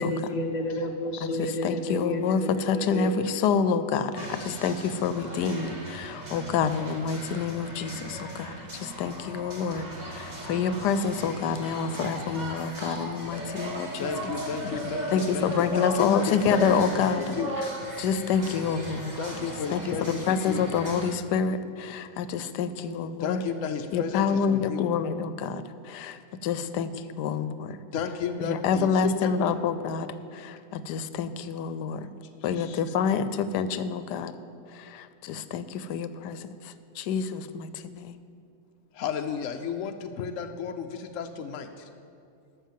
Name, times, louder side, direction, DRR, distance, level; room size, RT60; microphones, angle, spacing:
voice 1, 0.0-3.1, left 1 dB, 35° left, 3 dB, 0.8 m, -31 dB
voice 2, 1.2-14.1 14.6-14.8 15.1-17.4 18.0-19.2 19.7-23.4 23.9-27.8 28.4-32.1 32.4-34.3 34.7-38.2, left 6 dB, 85° left, 13 dB, 1.2 m, -28 dB
sound 1, 4.2-21.1, right 1 dB, 30° right, 1.3 m, -37 dB
voice 3, 14.0-17.0 17.3-17.5 19.2-20.7 23.2-24.9 27.9-29.6 32.0-32.1 32.6-32.8 38.9-41.9, left 6 dB, 65° left, 5 dB, 0.8 m, -33 dB
12.5 x 6.5 x 7.4 m, 2.4 s
omnidirectional pair, 1.7 m